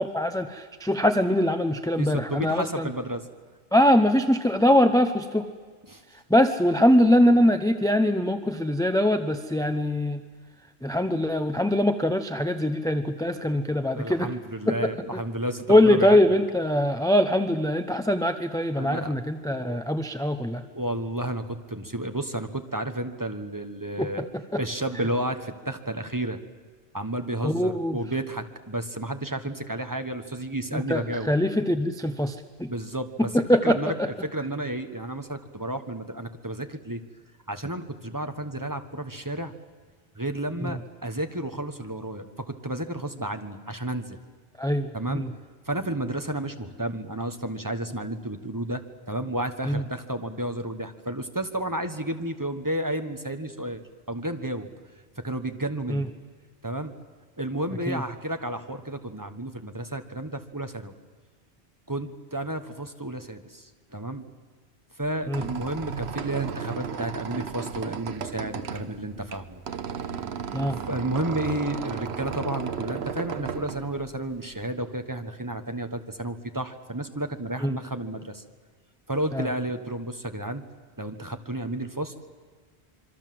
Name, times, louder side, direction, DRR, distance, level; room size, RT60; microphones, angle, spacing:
voice 1, 0.0-2.9 3.7-5.5 6.3-10.2 10.8-14.3 14.6-14.8 15.7-20.6 24.0-24.1 27.4-28.0 30.7-32.7 33.3-33.8 40.6-40.7 44.6-45.3 49.7-49.8 55.9-56.0 57.9-58.0 65.3-65.4 70.5-70.8 77.6-77.7 79.3-79.5, left 1 dB, 5° left, 8 dB, 0.8 m, -22 dB
voice 2, 2.0-3.3 5.9-6.0 13.9-16.2 18.8-19.1 19.4-19.8 20.7-24.3 24.6-26.4 26.9-31.3 32.7-33.3 33.6-37.0 37.5-39.5 40.2-44.2 44.9-45.3 45.7-48.8 49.1-53.8 54.1-54.7 55.2-56.1 56.6-56.9 57.4-60.9 61.9-64.2 65.0-69.6 70.9-78.4 79.1-80.6 81.0-82.1, right 1 dB, 20° right, 7 dB, 1.4 m, -31 dB
Squeak, 65.0-74.6, right 6 dB, 85° right, 1.2 m, -35 dB
26.5 x 23.5 x 7.8 m, 1.5 s
omnidirectional pair, 1.1 m